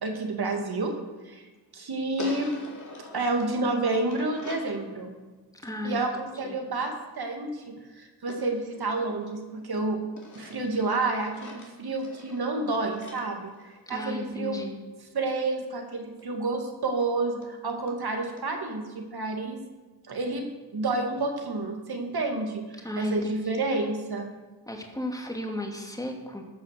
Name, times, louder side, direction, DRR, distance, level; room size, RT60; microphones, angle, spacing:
voice 1, 0.0-0.9 1.3-1.4 1.7-2.6 3.1-5.1 5.8-10.0 10.3-13.5 13.9-14.6 15.1-19.6 20.1-20.4 20.7-24.3, right 2 dB, 60° right, 3 dB, 2.2 m, -29 dB
sound 1, 2.2-4.8 8.3-9.7 10.2-14.3 16.2-16.3 16.6-16.7 17.0-17.1 17.4-17.5 17.9-18.0 18.4-18.5, left 2 dB, 40° left, 3.0 m, -45 dB
voice 2, 5.5-6.0 6.4-6.6 13.9-14.8 22.8-23.6 24.7-26.4, left 1 dB, 10° left, 2 dB, 2.6 m, -35 dB
15.0 x 5.7 x 6.6 m, 1.3 s
supercardioid pair, 45°, 43 cm